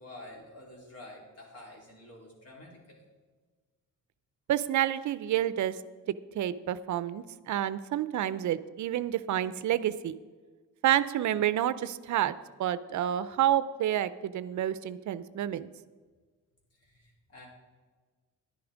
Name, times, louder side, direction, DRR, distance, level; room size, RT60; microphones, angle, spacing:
voice 1, 0.0-3.0 16.7-17.5, left 1 dB, 50° left, -2 dB, 3.8 m, -49 dB
voice 2, 4.5-5.8 6.4-10.1 10.8-12.3 12.6-15.7, right 11 dB, 65° right, 15 dB, 0.5 m, -29 dB
11.0 x 10.5 x 5.0 m, 1.4 s
cardioid pair, 130°, 32 cm